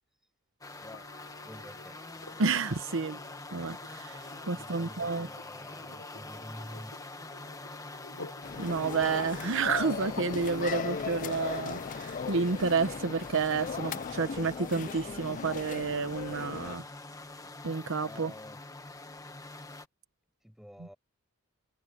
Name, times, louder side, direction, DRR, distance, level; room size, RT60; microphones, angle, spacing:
sound 1, 0.6-19.9, left 2 dB, 15° left, 1.4 m, -45 dB
sound 2, 0.9-14.9 16.6-16.7, left 2 dB, 70° left, 7.8 m, -51 dB
voice 1, 1.4-2.0 4.5-6.9 17.1-17.5 20.4-21.0, equal, ahead, 6.2 m, -49 dB
voice 2, 2.4-3.2 3.5-5.3 8.6-16.9 17.6-18.3, right 4 dB, 60° right, 0.9 m, -30 dB
sound 3, 8.4-16.8, left 6 dB, 35° left, 0.4 m, -38 dB
head